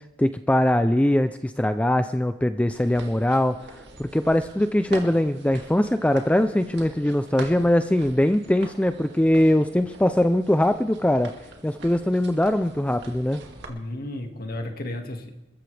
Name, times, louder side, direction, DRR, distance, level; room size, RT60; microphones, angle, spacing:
voice 1, 0.2-11.3 11.6-13.4, left 1 dB, 5° left, 10 dB, 0.4 m, -22 dB
sound 1, 2.7-13.7, right 2 dB, 60° right, 2.3 m, -44 dB
voice 2, 13.7-15.3, left 1 dB, 50° left, 5 dB, 1.9 m, -33 dB
28.0 x 14.0 x 3.4 m, 1.0 s
head